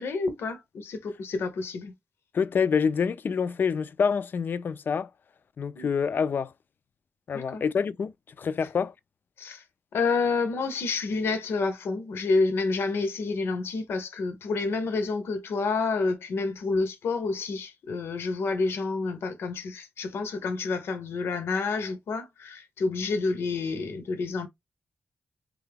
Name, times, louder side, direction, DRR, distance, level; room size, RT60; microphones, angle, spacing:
voice 1, 0.0-1.9 5.8-5.9 7.3-7.6 9.4-9.6 9.9-24.5, left 3 dB, 85° left, 0.7 m, -29 dB
voice 2, 2.3-5.1 5.6-6.5 7.3-8.9, left 6 dB, 55° left, 0.3 m, -27 dB
3.7 x 2.3 x 3.3 m
cardioid pair, 85°, 4 cm